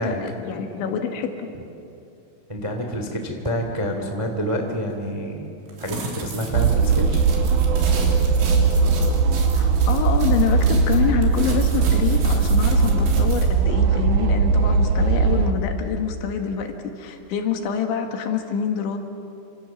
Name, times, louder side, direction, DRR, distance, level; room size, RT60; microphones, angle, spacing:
voice 1, 0.0-1.5 9.5-19.0, left 7 dB, 75° left, 4 dB, 4.1 m, -26 dB
voice 2, 2.5-5.4 5.8-7.2, equal, 50° right, 4 dB, 0.4 m, -27 dB
sound 1, 5.7-11.0 11.2-13.4, right 3 dB, 70° right, 5.6 m, -34 dB
sound 2, 6.5-15.5, right 4 dB, 85° right, 1.7 m, -19 dB
28.5 x 27.0 x 7.3 m, 2.6 s
omnidirectional pair, 5.6 m